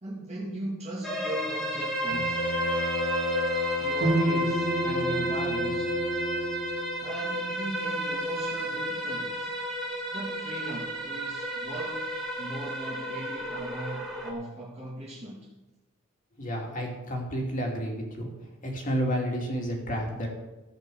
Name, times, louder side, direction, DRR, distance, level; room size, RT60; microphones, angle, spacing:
voice 1, 0.0-2.4 3.8-5.9 7.0-9.5 10.1-12.1 12.4-15.5, right 1 dB, 30° right, -5 dB, 2.1 m, -38 dB
sound 1, 1.0-14.3, right 1 dB, ahead, 1.9 m, -32 dB
Bowed string instrument, 2.1-7.0, left 2 dB, 60° left, 0.9 m, -33 dB
sound 2, 4.0-8.0, right 1 dB, 85° right, 2.7 m, -31 dB
voice 2, 16.4-18.3 18.6-20.3, equal, 35° left, 0 dB, 2.7 m, -30 dB
14.5 x 5.5 x 7.0 m, 1.1 s
head